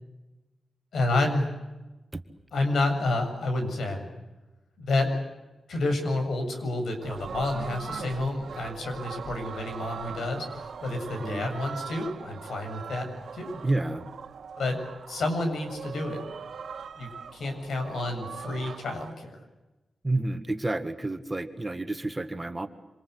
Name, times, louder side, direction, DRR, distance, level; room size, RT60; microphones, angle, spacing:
voice 1, 0.9-1.5 2.5-4.1 4.8-5.1 5.7-13.6 14.6-14.8 15.1-16.2 17.0-19.4, left 2 dB, 80° left, 6 dB, 7.3 m, -29 dB
sound 1, 7.0-19.1, right 6 dB, 75° right, 1.9 m, -41 dB
voice 2, 11.2-11.5 13.6-14.1 20.0-22.7, right 2 dB, 15° right, 7 dB, 1.8 m, -30 dB
27.5 x 26.5 x 8.0 m, 1.1 s
wide cardioid pair, 120°, 0 cm